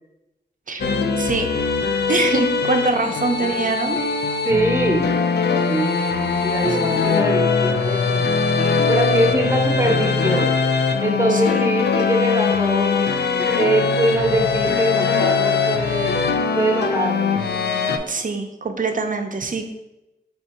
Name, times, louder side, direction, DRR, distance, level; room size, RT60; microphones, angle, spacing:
sound 1, 0.8-18.0, left 5 dB, 70° left, 0.4 m, -21 dB
voice 1, 1.2-1.5 2.1-4.0 6.7-7.1 11.3-11.6 18.1-19.7, right 3 dB, 50° right, 5 dB, 0.6 m, -24 dB
voice 2, 4.4-5.1 5.7-8.2 8.8-10.5 11.0-13.0 13.5-16.1 16.5-17.6, right 1 dB, 15° right, 1 dB, 0.9 m, -23 dB
4.4 x 2.7 x 4.2 m, 0.93 s
wide cardioid pair, 75°, 18 cm